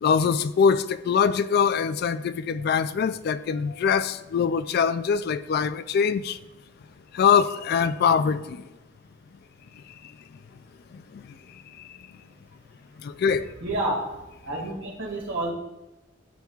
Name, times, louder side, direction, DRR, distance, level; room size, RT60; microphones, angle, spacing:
voice 1, 0.0-6.4 7.1-8.6 10.9-11.3 13.0-13.5, left 6 dB, 55° left, 0.3 m, -23 dB
voice 2, 13.6-15.5, right 2 dB, 75° right, 2.2 m, -30 dB
13.5 x 5.3 x 2.4 m
head